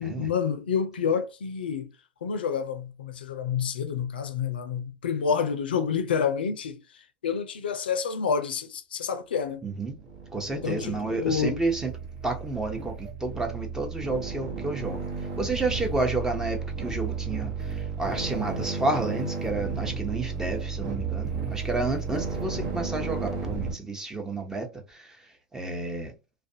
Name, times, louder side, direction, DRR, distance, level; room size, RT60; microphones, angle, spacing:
voice 1, 0.0-1.9 2.2-6.8 7.2-9.6 10.6-11.6, left 6 dB, 80° left, 0.5 m, -28 dB
voice 2, 9.6-10.0 10.3-11.9 12.2-15.1 15.4-26.1, right 2 dB, 10° right, 0.8 m, -31 dB
sound 1, 9.9-23.7, right 5 dB, 45° right, 0.9 m, -33 dB
2.4 x 2.2 x 2.6 m
hypercardioid pair, 100°, 5 cm